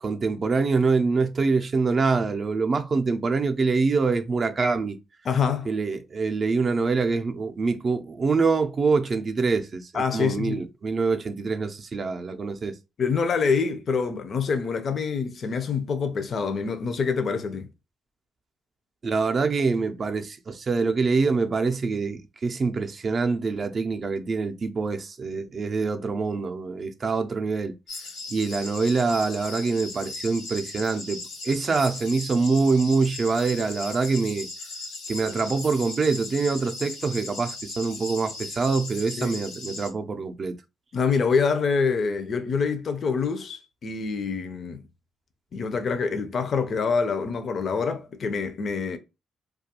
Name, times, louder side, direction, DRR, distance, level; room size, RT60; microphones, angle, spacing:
voice 1, 0.0-5.0 5.7-12.8 19.0-27.7 28.3-34.5 35.1-40.6, right 4 dB, 40° right, 0.4 m, -25 dB
voice 2, 5.3-5.7 9.9-10.6 13.0-17.7 39.2-39.4 40.9-44.8 45.5-49.0, left 5 dB, 50° left, 0.4 m, -26 dB
sound 1, 27.9-39.9, left 3 dB, 85° left, 0.8 m, -38 dB
2.3 x 2.3 x 2.8 m
cardioid pair, 90°, 0 cm